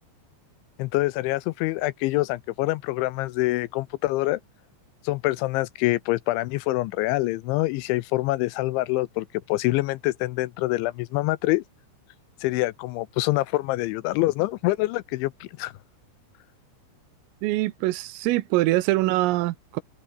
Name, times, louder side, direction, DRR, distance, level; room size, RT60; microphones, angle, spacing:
voice 1, 0.8-4.4 5.0-11.6 12.4-15.7, left 19 dB, 80° left, 2.8 m, -25 dB
voice 2, 17.4-19.8, right 18 dB, 85° right, 3.6 m, -24 dB
omnidirectional pair, 5.8 m